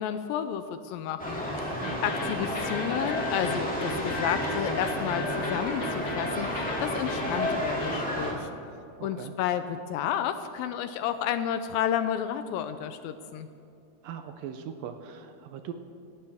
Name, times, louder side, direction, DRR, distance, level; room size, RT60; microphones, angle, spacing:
voice 1, 0.0-8.5 9.0-13.5, left 9 dB, 80° left, 10 dB, 2.2 m, -31 dB
sound 1, 1.2-8.3, equal, 5° left, 1.3 m, -31 dB
sound 2, 1.8-8.0, left 3 dB, 60° left, 1.3 m, -37 dB
voice 2, 1.8-2.3 9.0-9.3 14.0-15.7, right 8 dB, 75° right, 7 dB, 2.2 m, -40 dB
28.0 x 12.0 x 3.5 m, 2.6 s
omnidirectional pair, 4.4 m